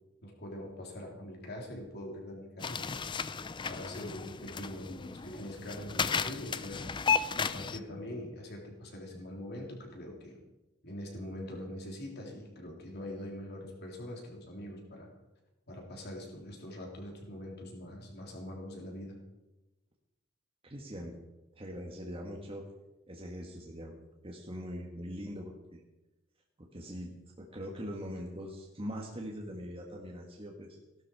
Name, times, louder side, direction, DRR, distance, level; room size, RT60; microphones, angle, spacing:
voice 1, 0.2-3.0 3.7-6.9 7.3-10.4 10.8-15.1 15.7-19.2, left 1 dB, 50° left, 0 dB, 3.6 m, -43 dB
sound 1, 2.6-7.8, left 6 dB, 25° left, 0.4 m, -34 dB
voice 2, 20.6-21.2 21.6-22.7 23.1-25.8 26.6-30.8, equal, 25° right, 0 dB, 1.5 m, -42 dB
17.0 x 12.0 x 4.7 m, 1.0 s
head